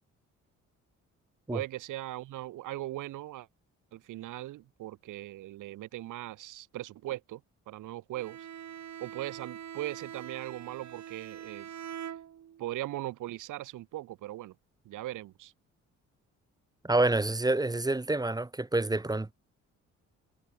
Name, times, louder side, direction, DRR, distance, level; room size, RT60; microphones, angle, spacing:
voice 1, 1.5-3.5 3.9-7.4 7.7-8.5 9.0-11.7 12.6-14.5 14.8-15.5, right 15 dB, 90° right, 6.7 m, -39 dB
Bowed string instrument, 8.2-12.8, right 10 dB, 65° right, 7.1 m, -44 dB
voice 2, 16.8-19.3, right 2 dB, 15° right, 1.5 m, -27 dB
cardioid pair, 90°, 30 cm